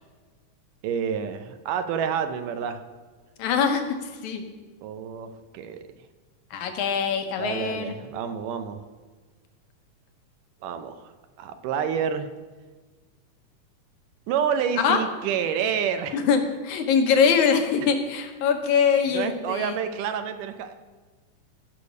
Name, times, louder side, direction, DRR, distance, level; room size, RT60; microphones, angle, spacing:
voice 1, 0.8-2.8 4.8-5.8 7.4-8.8 10.6-11.1 11.4-12.3 14.3-16.2 19.1-20.7, right 7 dB, 80° right, 8 dB, 2.3 m, -28 dB
voice 2, 3.4-4.4 6.5-8.0 14.8-15.0 16.1-19.8, left 6 dB, 70° left, 6 dB, 2.3 m, -23 dB
15.5 x 6.6 x 5.3 m, 1.3 s
omnidirectional pair, 3.8 m